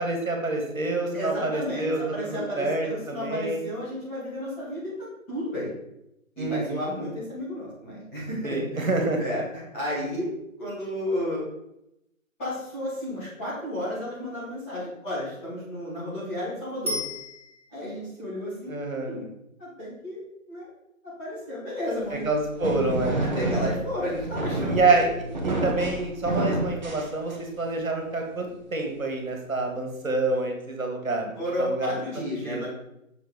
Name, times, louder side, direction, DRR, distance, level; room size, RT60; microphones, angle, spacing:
voice 1, 0.0-2.0 2.3-3.7 6.4-6.9 8.4-9.2 18.7-19.1 22.1-23.2 24.7-25.1 25.4-28.5 28.7-32.7, right 3 dB, 75° right, 2 dB, 1.9 m, -27 dB
voice 2, 1.1-4.9 5.3-5.7 6.4-8.9 9.2-10.3 10.6-11.4 12.4-17.0 17.7-18.7 19.1-19.3 19.6-20.2 20.5-20.7 21.2-22.2 23.2-24.8 31.4-32.7, left 1 dB, 10° left, -11 dB, 1.6 m, -32 dB
Bicycle bell, 16.9-18.0 27.0-27.1, left 1 dB, 50° right, 1.9 m, -34 dB
sound 1, 22.0-27.7, right 2 dB, 35° right, 1.2 m, -29 dB
6.5 x 4.4 x 4.7 m, 0.84 s
figure-of-eight pair, 165°, 41 cm